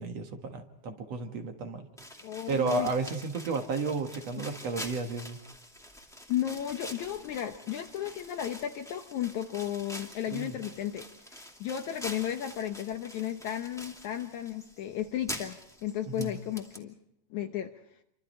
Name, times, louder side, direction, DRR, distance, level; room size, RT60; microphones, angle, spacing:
voice 1, 0.0-1.8 2.5-5.4 10.3-10.6 16.2-16.3, right 4 dB, 55° right, 5 dB, 2.6 m, -32 dB
sound 1, 2.0-16.8, equal, ahead, 2.0 m, -46 dB
voice 2, 2.2-2.9 6.3-11.1 11.3-17.0 17.3-17.7, left 11 dB, 70° left, 5 dB, 2.2 m, -34 dB
28.5 x 25.0 x 4.4 m, 0.77 s
omnidirectional pair, 3.7 m